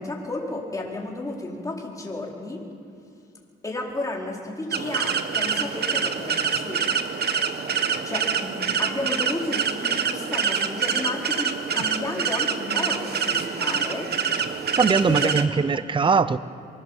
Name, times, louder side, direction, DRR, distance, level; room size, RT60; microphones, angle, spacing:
voice 1, 0.0-2.6 3.6-6.8 8.0-14.1 15.1-15.3, left 2 dB, 15° left, 4.3 m, -32 dB
sound 1, 4.7-15.5, right 6 dB, 55° right, 1.3 m, -26 dB
voice 2, 14.8-16.4, right 5 dB, 25° right, 0.7 m, -21 dB
24.0 x 16.5 x 7.3 m
cardioid pair, 90°, 20 cm